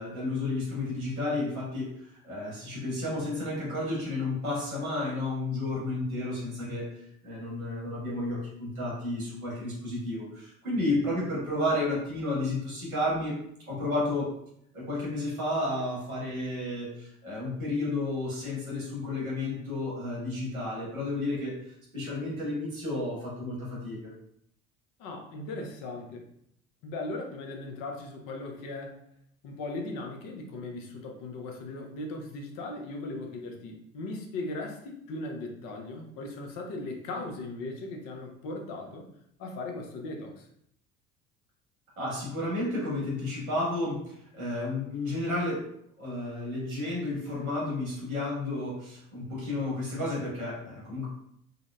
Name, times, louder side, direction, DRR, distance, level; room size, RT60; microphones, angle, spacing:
voice 1, 0.0-1.9 2.2-6.9 7.2-13.3 13.7-14.3 14.7-21.5 21.9-24.1 42.0-44.0 44.3-45.6 46.0-51.1, left 2 dB, 85° right, -5 dB, 1.3 m, -32 dB
voice 2, 25.0-26.2 26.8-28.9 29.4-39.1 39.4-40.5, left 2 dB, 50° left, 2 dB, 0.7 m, -38 dB
3.7 x 2.0 x 2.2 m, 0.71 s
figure-of-eight pair, 60°, 41 cm